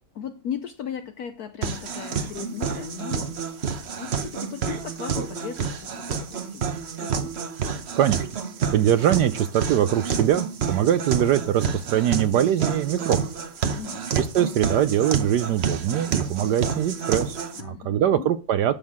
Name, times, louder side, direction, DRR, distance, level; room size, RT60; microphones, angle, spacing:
voice 1, 0.1-3.4 4.0-6.7 7.0-7.4 13.7-14.1 17.5-18.3, left 9 dB, 70° left, 0.9 m, -36 dB
sound 1, 1.6-17.6, right 6 dB, 55° right, 0.7 m, -29 dB
voice 2, 7.9-8.3 8.7-13.3 14.1-17.4 17.9-18.7, right 10 dB, 75° right, 1.0 m, -22 dB
11.5 x 6.2 x 3.6 m
omnidirectional pair, 2.2 m